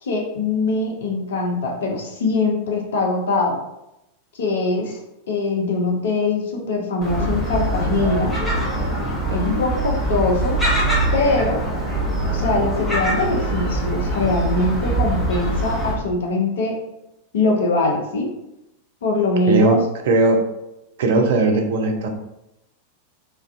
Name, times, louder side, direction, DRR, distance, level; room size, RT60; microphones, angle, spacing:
voice 1, 0.0-3.6 4.3-5.0 5.3-8.3 9.3-10.6 11.1-11.6 12.3-16.8 17.3-18.3 19.0-19.8, left 3 dB, 60° left, 1 dB, 0.5 m, -22 dB
Gull seagull, 7.0-15.9, right 1 dB, ahead, 0.8 m, -23 dB
voice 2, 19.5-19.8 20.1-20.4 21.0-22.1, right 3 dB, 55° right, 3 dB, 0.4 m, -17 dB
2.3 x 2.2 x 2.4 m, 0.88 s
figure-of-eight pair, 90°, 0 cm